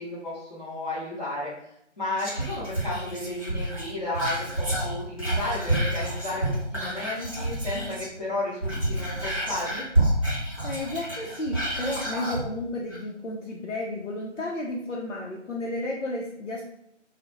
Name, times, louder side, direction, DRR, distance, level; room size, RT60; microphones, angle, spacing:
voice 1, 0.0-1.5 2.0-9.9, left 2 dB, 35° left, -12 dB, 0.7 m, -33 dB
Whispering, 2.2-8.2 8.5-12.4 12.9-13.0, right 1 dB, 30° right, 0.8 m, -29 dB
voice 2, 10.6-16.6, left 1 dB, 75° left, -3 dB, 0.5 m, -32 dB
2.2 x 2.0 x 2.8 m, 0.77 s
figure-of-eight pair, 165°, 37 cm